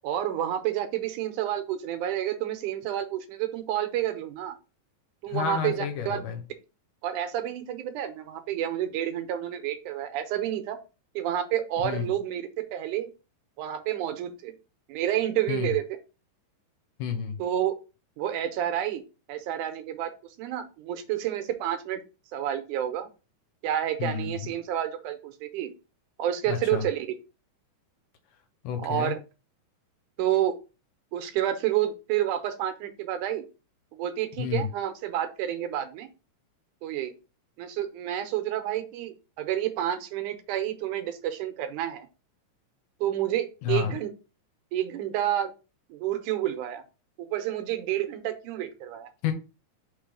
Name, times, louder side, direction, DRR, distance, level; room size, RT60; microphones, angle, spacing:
voice 1, 0.0-4.6 5.2-6.2 7.0-10.8 11.2-13.1 13.6-14.5 14.9-15.8 17.4-17.8 18.2-19.0 19.3-20.1 20.4-22.0 22.3-23.1 23.6-25.7 26.2-27.1 28.8-29.2 30.2-30.6 31.1-33.5 33.9-36.1 36.8-37.2 37.6-42.1 43.0-44.1 44.7-45.5 45.9-46.8 47.2-49.1, right 11 dB, 75° right, 7 dB, 2.2 m, -29 dB
voice 2, 5.3-6.4 11.8-12.1 15.5-15.8 17.0-17.4 24.0-24.5 26.5-26.9 28.6-29.2 34.4-34.7 43.6-44.0 49.2-49.3, left 8 dB, 75° left, 6 dB, 2.5 m, -30 dB
5.3 x 3.7 x 5.1 m, 0.31 s
omnidirectional pair, 3.9 m